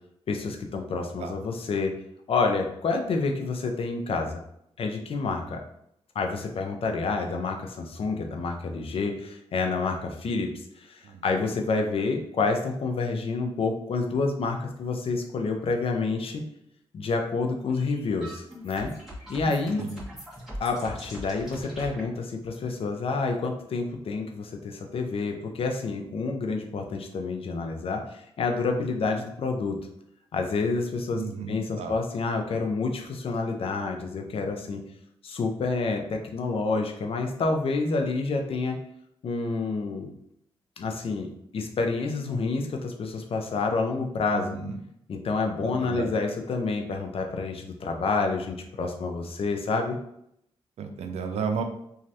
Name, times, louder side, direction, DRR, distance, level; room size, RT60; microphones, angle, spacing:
voice 1, 0.3-1.9 2.3-4.4 4.8-5.6 6.1-16.4 16.9-18.9 19.3-19.8 20.6-29.8 30.3-31.2 31.5-34.8 35.2-38.8 39.2-40.1 40.8-44.6 45.1-50.0, left 4 dB, 65° left, 3 dB, 0.5 m, -28 dB
voice 2, 11.0-11.4 19.8-20.0 31.1-31.9 44.3-44.8 45.6-46.1 50.8-51.6, right 5 dB, 90° right, 5 dB, 0.4 m, -33 dB
sound 1, 17.7-22.0, equal, 5° right, 1.3 m, -41 dB
3.1 x 2.4 x 2.7 m, 0.75 s
cardioid pair, 90°, 11 cm